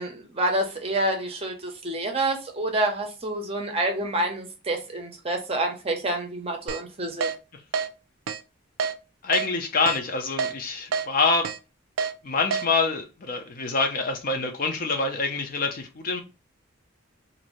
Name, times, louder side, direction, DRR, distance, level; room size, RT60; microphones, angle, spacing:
voice 1, 0.0-7.3, right 1 dB, 30° right, 0.6 m, -28 dB
Keyboard (musical), 6.7-6.8 7.2-7.3 7.7-7.9 8.3-8.4 8.8-8.9 9.3-9.5 9.9-10.0 10.4-10.5 10.9-11.1 11.4-11.6 12.0-12.1 12.5-12.6, right 6 dB, 90° right, 0.4 m, -27 dB
voice 2, 9.2-11.5 12.2-16.2, left 4 dB, 45° left, 0.5 m, -26 dB
2.6 x 2.5 x 3.0 m
head